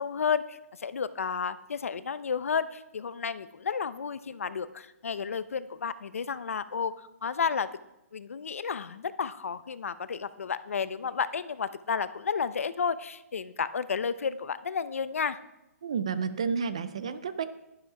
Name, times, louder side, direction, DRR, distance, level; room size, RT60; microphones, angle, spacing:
voice 1, 0.0-6.9 7.2-7.7 8.1-15.4, left 6 dB, 60° left, 15 dB, 0.6 m, -32 dB
voice 2, 15.8-17.5, right 6 dB, 20° right, 13 dB, 0.3 m, -31 dB
11.0 x 11.0 x 4.8 m, 0.93 s
hypercardioid pair, 180°, 9 cm